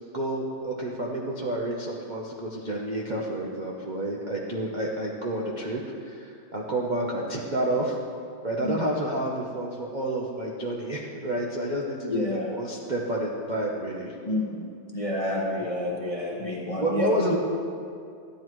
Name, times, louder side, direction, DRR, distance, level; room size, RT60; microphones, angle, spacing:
voice 1, 0.1-7.9 8.4-14.2 16.8-17.4, right 1 dB, 55° right, -3 dB, 0.5 m, -29 dB
voice 2, 12.1-12.5 14.3-14.7 14.9-17.1, left 2 dB, 25° left, -3 dB, 0.8 m, -29 dB
13.5 x 10.5 x 3.1 m, 2.4 s
omnidirectional pair, 2.3 m